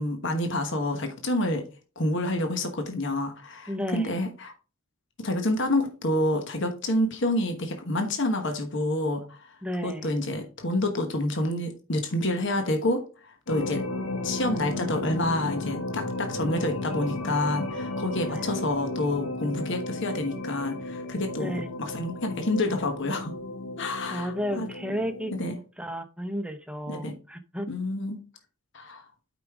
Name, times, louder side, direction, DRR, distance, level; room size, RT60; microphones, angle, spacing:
voice 1, 0.0-1.6 2.0-4.5 5.2-9.5 9.8-13.8 14.2-23.3 23.8-24.7 25.4-25.5 26.9-27.1 27.7-28.2 28.7-29.0, left 1 dB, 60° left, 1.2 m, -28 dB
voice 2, 3.7-4.1 9.6-10.1 18.3-18.4 21.4-21.7 24.1-27.7, equal, 5° right, 0.7 m, -33 dB
sound 1, 13.5-25.5, left 2 dB, 75° left, 1.3 m, -34 dB
8.4 x 5.1 x 3.6 m
head